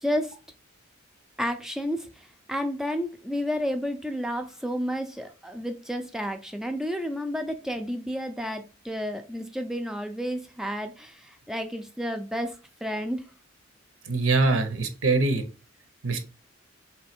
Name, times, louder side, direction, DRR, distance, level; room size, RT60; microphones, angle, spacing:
voice 1, 0.0-0.3 1.4-12.6 12.8-13.2, equal, ahead, 0.3 m, -31 dB
voice 2, 14.1-15.4 16.0-16.3, right 3 dB, 85° right, 0.7 m, -23 dB
3.4 x 3.1 x 4.3 m
head